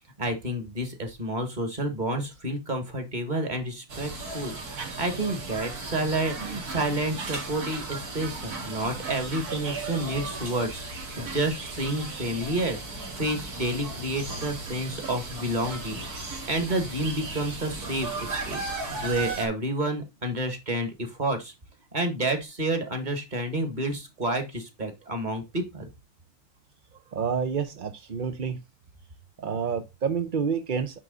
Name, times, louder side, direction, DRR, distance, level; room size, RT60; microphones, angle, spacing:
voice 1, 0.2-10.9 11.2-16.0 16.5-21.5 21.9-25.9, right 1 dB, 30° right, 1.7 m, -30 dB
sound 1, 3.9-19.5, right 3 dB, 80° right, 2.4 m, -36 dB
voice 2, 26.9-28.6 29.4-31.0, right 6 dB, 50° right, 0.6 m, -29 dB
9.6 x 3.5 x 3.8 m
omnidirectional pair, 1.6 m